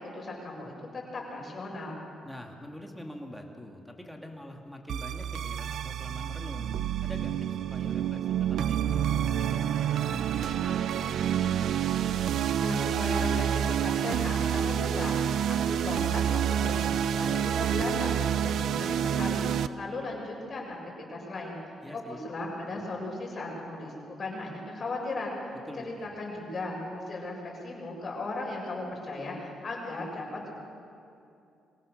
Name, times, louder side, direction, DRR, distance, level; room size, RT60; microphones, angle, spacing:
voice 1, 0.1-2.0 12.6-20.8 21.1-25.3 25.8-30.5, left 2 dB, 40° left, -2 dB, 7.0 m, -37 dB
voice 2, 2.2-6.7 7.0-11.6 21.8-22.3 25.7-26.2, left 1 dB, ahead, 1 dB, 2.5 m, -45 dB
sound 1, 4.9-19.7, right 9 dB, 70° right, 0.6 m, -28 dB
24.5 x 17.0 x 6.7 m, 2.6 s
cardioid pair, 90°, 0 cm